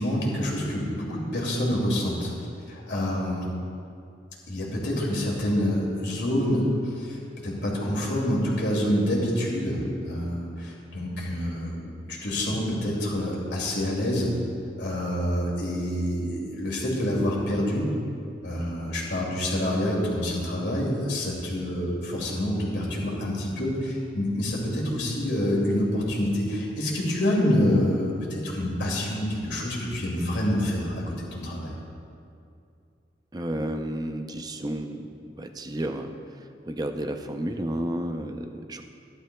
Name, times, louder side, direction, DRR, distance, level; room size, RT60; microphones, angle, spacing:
voice 1, 0.0-2.3 2.7-3.4 4.5-14.3 14.8-17.9 18.4-31.7, left 1 dB, 75° left, -3 dB, 2.4 m, -27 dB
voice 2, 33.3-35.0 35.4-38.8, right 1 dB, 20° right, 6 dB, 0.5 m, -32 dB
15.0 x 11.5 x 2.3 m, 2.4 s
head